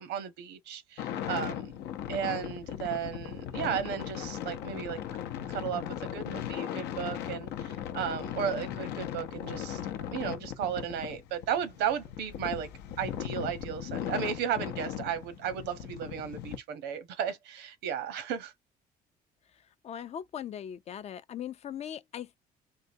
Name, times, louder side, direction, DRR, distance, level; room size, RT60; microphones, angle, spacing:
voice 1, 0.0-1.7 2.1-5.0 5.5-9.8 10.1-12.7 13.0-18.5, right 8 dB, 85° right, 0.8 m, -34 dB
sound 1, 1.0-16.6, left 10 dB, 85° left, 0.6 m, -38 dB
voice 2, 19.5-22.4, left 9 dB, 40° left, 0.4 m, -40 dB
3.7 x 2.2 x 2.6 m
cardioid pair, 110°, 17 cm